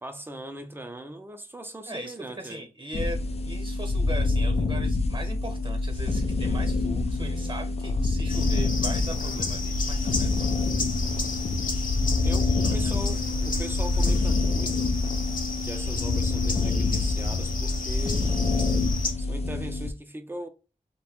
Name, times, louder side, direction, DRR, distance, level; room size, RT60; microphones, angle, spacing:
voice 1, 0.0-2.7 12.2-14.9 15.6-18.4 19.2-20.5, right 1 dB, 15° right, 0.5 m, -39 dB
voice 2, 1.9-10.5 12.6-13.1, right 1 dB, 35° right, 0.9 m, -39 dB
sound 1, 2.9-19.9, left 3 dB, 45° left, 0.4 m, -27 dB
sound 2, 8.3-19.1, left 2 dB, 70° left, 0.8 m, -30 dB
2.8 x 2.2 x 2.9 m
wide cardioid pair, 85°, 15 cm